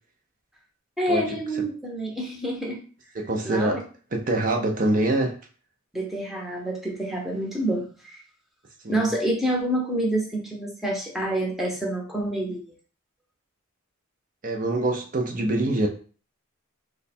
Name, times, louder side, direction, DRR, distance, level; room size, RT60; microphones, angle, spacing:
voice 1, 1.0-2.8 3.4-3.8 5.9-8.2 8.9-12.7, right 1 dB, ahead, -1 dB, 0.7 m, -27 dB
voice 2, 3.1-3.8 4.1-5.4 8.8-9.1 14.4-15.9, right 2 dB, 40° right, 1 dB, 0.5 m, -24 dB
3.2 x 2.2 x 4.1 m, 0.39 s
head